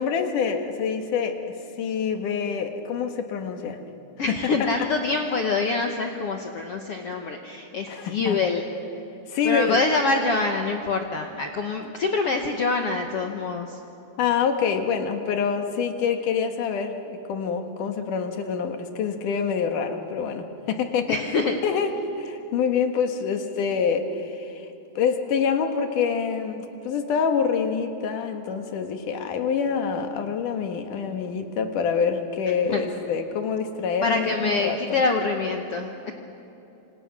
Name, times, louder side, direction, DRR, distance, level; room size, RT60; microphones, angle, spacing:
voice 1, 0.0-3.8 4.3-4.7 7.9-8.4 9.3-9.8 11.8-11.9 14.2-21.2 21.6-24.7 25.0-35.0, left 6 dB, 60° left, 5 dB, 2.8 m, -26 dB
voice 2, 4.2-8.6 9.4-13.8 21.1-21.5 32.7-32.8 34.0-36.1, left 3 dB, 80° left, 3 dB, 1.3 m, -25 dB
27.5 x 26.5 x 6.1 m, 2.9 s
omnidirectional pair, 4.6 m